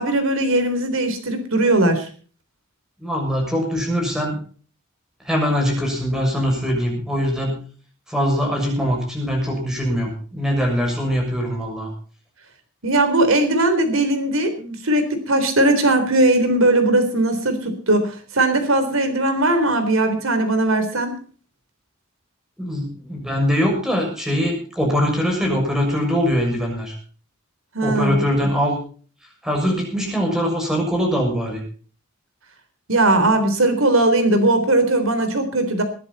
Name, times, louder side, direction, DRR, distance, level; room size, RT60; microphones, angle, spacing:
voice 1, 0.0-2.1 12.8-21.1 27.7-28.5 32.9-35.8, right 2 dB, 70° right, 8 dB, 3.8 m, -19 dB
voice 2, 3.0-4.4 5.2-7.6 8.1-11.9 22.6-26.9 27.8-28.8 29.4-31.6, equal, 5° right, 1 dB, 6.6 m, -22 dB
21.0 x 10.5 x 4.2 m, 0.40 s
head